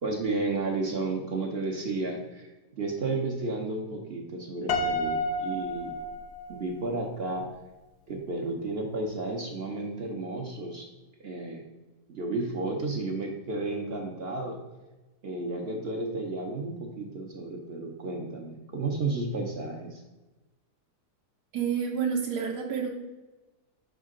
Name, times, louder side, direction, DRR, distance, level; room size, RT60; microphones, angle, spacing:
voice 1, 0.0-2.5 2.8-5.9 6.5-7.4 8.1-10.9 11.2-11.6 12.1-14.6 15.2-20.0, right 3 dB, 45° right, 0 dB, 0.8 m, -32 dB
Piano, 4.7-6.9, left 1 dB, 70° left, 1.2 m, -30 dB
voice 2, 21.5-22.9, right 7 dB, 70° right, 0 dB, 1.2 m, -29 dB
6.3 x 4.9 x 3.7 m, 1.1 s
omnidirectional pair, 1.9 m